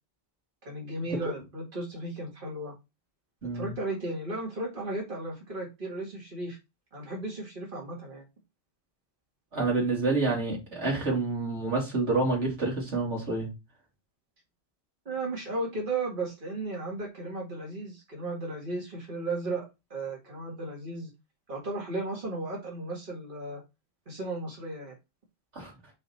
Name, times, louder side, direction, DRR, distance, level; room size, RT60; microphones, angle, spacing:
voice 1, 0.7-2.7 3.5-6.6 6.9-8.2 15.1-19.7 19.9-21.1 21.5-23.6 24.1-25.0, right 2 dB, 50° right, 2.1 m, -35 dB
voice 2, 3.4-3.7 9.5-13.5 25.5-25.7, right 3 dB, 85° right, 2.9 m, -28 dB
5.6 x 4.2 x 4.2 m
omnidirectional pair, 1.1 m